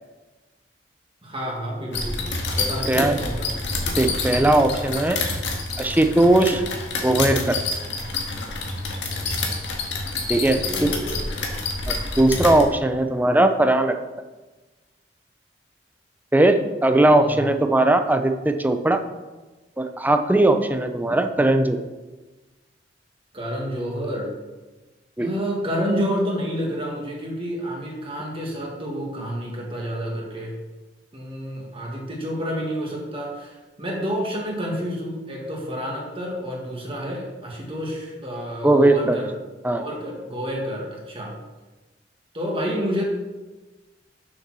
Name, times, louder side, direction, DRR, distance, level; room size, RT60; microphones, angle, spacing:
voice 1, 1.2-3.5 10.3-11.4 17.2-17.4 23.3-24.3 25.2-30.5 31.1-39.3 39.7-41.4 42.3-43.0, equal, 30° right, -2 dB, 2.0 m, -29 dB
sound 1, 1.9-12.6, left 3 dB, 90° left, 1.8 m, -28 dB
voice 2, 2.9-3.2 4.0-5.2 5.8-6.6 7.0-7.6 10.3-10.9 11.9-13.9 16.3-19.0 19.8-21.8 25.2-25.3 38.6-39.2 39.6-39.8, right 1 dB, 10° right, 7 dB, 0.6 m, -19 dB
7.1 x 6.7 x 6.2 m, 1.2 s
head